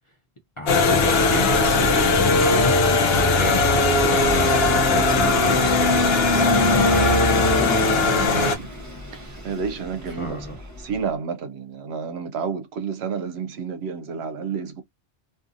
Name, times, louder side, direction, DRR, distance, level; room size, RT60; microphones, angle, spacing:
voice 1, 0.6-7.9 10.2-10.6, left 2 dB, 35° left, 0.5 m, -31 dB
sound 1, 0.7-8.6, left 3 dB, 65° left, 0.8 m, -19 dB
Vehicle / Engine, 1.3-11.1, right 1 dB, 20° right, 0.6 m, -32 dB
voice 2, 8.2-8.7 9.1-10.4 10.8-14.8, right 6 dB, 70° right, 0.8 m, -30 dB
2.6 x 2.5 x 2.5 m
omnidirectional pair, 1.2 m